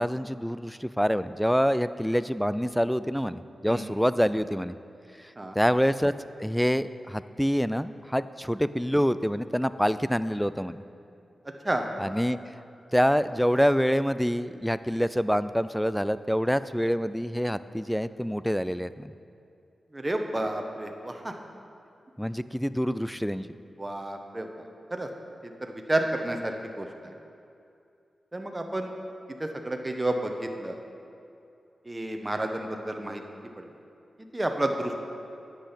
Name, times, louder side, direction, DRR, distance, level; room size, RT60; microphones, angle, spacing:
voice 1, 0.0-4.8 5.2-6.1 6.4-10.8 12.0-12.4 12.9-19.1 22.2-23.5, equal, ahead, 14 dB, 0.3 m, -26 dB
voice 2, 19.9-21.3 23.8-25.1 25.4-27.1 28.3-28.9 29.4-30.8 31.8-33.2 33.6-33.7 34.2-34.9, right 1 dB, 20° right, 4 dB, 1.1 m, -31 dB
10.0 x 7.7 x 5.8 m, 2.5 s
cardioid pair, 65°, 0 cm